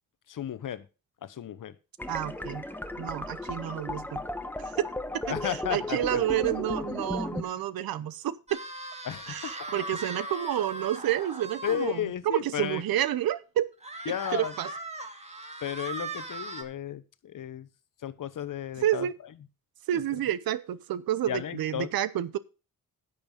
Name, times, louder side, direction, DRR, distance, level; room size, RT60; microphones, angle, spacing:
voice 1, 0.3-0.9 1.2-1.7 3.5-3.7 5.3-6.2 7.4-7.5 9.0-9.7 11.6-12.8 14.1-14.5 15.6-17.7 18.0-19.1 19.9-20.0 21.3-21.9, left 10 dB, 65° left, 1.0 m, -34 dB
sound 1, 2.0-7.4, left 1 dB, 5° left, 1.0 m, -35 dB
voice 2, 2.1-2.6 3.0-4.2 4.6-4.8 5.3-8.6 9.3-13.7 14.3-14.7 18.8-19.1 19.9-22.4, right 12 dB, 85° right, 0.7 m, -29 dB
sound 2, 8.5-11.9 12.4-12.5 12.8-12.9 13.8-16.6, right 2 dB, 20° right, 2.0 m, -39 dB
10.5 x 6.8 x 5.2 m
cardioid pair, 75°, 34 cm